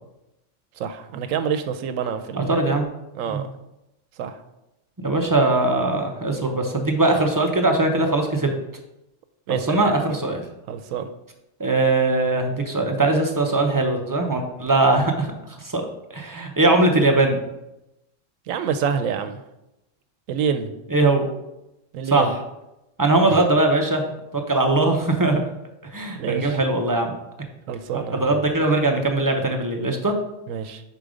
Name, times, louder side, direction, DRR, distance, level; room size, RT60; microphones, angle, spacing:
voice 1, 0.8-2.6 3.1-3.5 4.2-4.4 9.5-9.9 10.7-11.1 18.5-19.4 20.3-20.7 21.9-22.3 26.2-26.6 27.7-28.2 30.5-30.8, right 7 dB, 85° right, 8 dB, 1.0 m, -27 dB
voice 2, 2.3-2.9 3.3-3.4 5.0-8.5 9.5-10.4 11.6-17.4 20.9-21.2 22.1-22.3 23.0-24.0 24.5-25.4 25.9-27.1 28.1-30.1, right 2 dB, 25° right, 3 dB, 0.4 m, -20 dB
5.1 x 4.5 x 4.9 m, 0.91 s
omnidirectional pair, 1.3 m